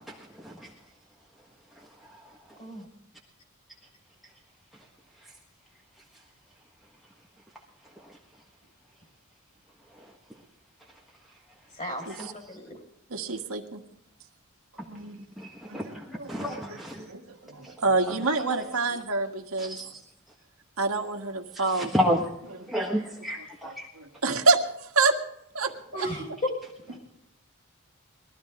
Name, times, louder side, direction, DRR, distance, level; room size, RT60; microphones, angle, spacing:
voice 1, 11.8-12.8 25.9-26.5 26.9-27.0, left 1 dB, 35° left, 2 dB, 5.4 m, -34 dB
voice 2, 13.1-13.8 14.9-15.2 15.7-19.9 20.8-21.9 22.5-22.7 23.4-25.2 25.5-25.7 26.0-26.1, right 3 dB, 85° right, 3 dB, 1.8 m, -28 dB
voice 3, 15.4-17.1 19.6-19.9 21.5-22.2 22.7-23.8, equal, ahead, -3 dB, 1.5 m, -30 dB
21.5 x 14.0 x 3.7 m, 0.79 s
head